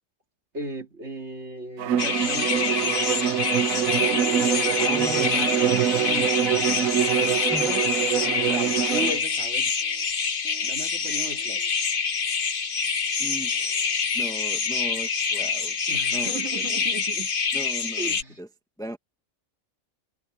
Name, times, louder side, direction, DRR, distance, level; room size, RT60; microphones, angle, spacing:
voice 1, 0.5-2.9 4.0-5.0 5.3-6.4 7.6-7.9 8.2-9.7 10.6-11.6 15.9-17.3 18.0-18.4, right 2 dB, 55° right, 2.9 m, -36 dB
Bowed string instrument, 1.8-9.2, right 10 dB, 80° right, 1.1 m, -25 dB
sound 1, 2.0-18.2, left 5 dB, 45° left, 1.2 m, -26 dB
voice 2, 4.6-5.8 7.4-7.8 13.2-15.8 16.1-16.6 17.5-18.5 18.8-19.0, right 1 dB, 5° left, 1.3 m, -38 dB
sound 2, 6.6-6.9 7.3-7.6 7.9-8.2 8.5-9.5 9.8-10.1 10.4-10.8 11.1-11.7, left 1 dB, 70° left, 5.9 m, -50 dB
omnidirectional pair, 1.4 m